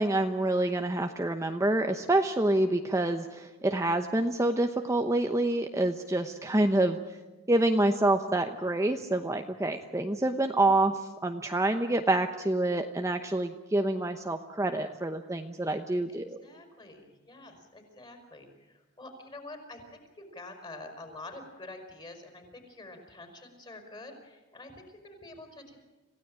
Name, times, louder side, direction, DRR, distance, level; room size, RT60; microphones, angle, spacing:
voice 1, 0.0-7.0 7.5-10.9 11.2-16.4, right 2 dB, 15° right, 5 dB, 0.9 m, -27 dB
voice 2, 16.1-25.8, left 2 dB, 25° left, 5 dB, 4.9 m, -47 dB
27.0 x 16.5 x 8.9 m, 1.2 s
head